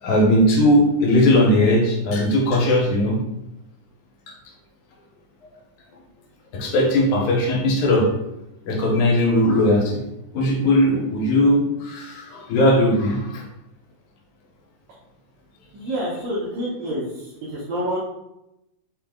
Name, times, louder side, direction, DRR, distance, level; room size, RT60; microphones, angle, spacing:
voice 1, 0.0-3.2 6.5-8.1 8.6-10.0 10.3-13.4, left 1 dB, 85° left, -1 dB, 2.4 m, -18 dB
voice 2, 15.7-18.0, equal, 70° right, -7 dB, 2.1 m, -28 dB
5.4 x 2.5 x 3.6 m, 0.88 s
omnidirectional pair, 3.4 m